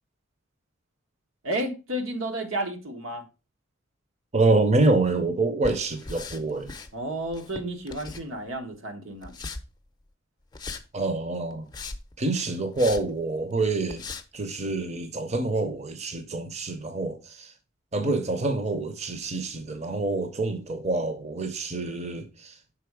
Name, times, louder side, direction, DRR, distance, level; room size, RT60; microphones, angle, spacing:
voice 1, 1.4-3.2 6.9-9.3, right 1 dB, 85° right, 1.2 m, -32 dB
voice 2, 4.3-6.7 10.9-11.7 12.2-14.0 14.3-17.5 17.9-22.5, right 2 dB, 35° right, 0.7 m, -26 dB
sound 1, 5.6-6.9 7.3-8.6 9.2-9.6 10.5-10.8 11.5-12.1 12.8-13.0 13.5-13.6 13.9-14.2, left 3 dB, 20° left, 0.6 m, -38 dB
6.0 x 4.0 x 4.7 m
head